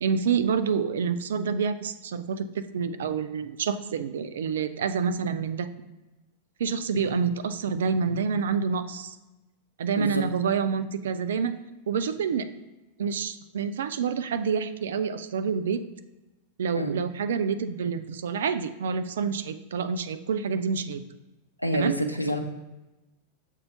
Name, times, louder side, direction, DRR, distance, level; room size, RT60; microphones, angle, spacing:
voice 1, 0.0-5.7 6.6-9.2 9.8-11.5 11.9-12.5 13.0-15.8 16.6-21.0 21.7-21.9, right 6 dB, 60° right, 11 dB, 0.3 m, -28 dB
voice 2, 21.6-22.4, right 1 dB, 90° left, 5 dB, 0.5 m, -27 dB
6.8 x 2.7 x 5.2 m, 1.0 s
figure-of-eight pair, 90°, 0 cm